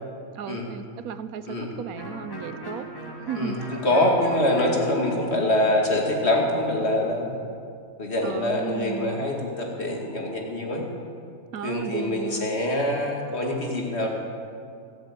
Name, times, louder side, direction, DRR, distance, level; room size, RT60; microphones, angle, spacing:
voice 1, 0.3-2.9 3.3-3.6 8.2-9.2 11.5-12.5, right 7 dB, 80° right, 13 dB, 1.2 m, -34 dB
Electric guitar, 1.9-7.6, equal, 15° left, 2.7 m, -40 dB
voice 2, 3.4-7.4 8.0-10.8 11.6-14.1, left 1 dB, 50° left, 0 dB, 2.5 m, -24 dB
17.5 x 8.7 x 8.6 m, 2.3 s
omnidirectional pair, 1.5 m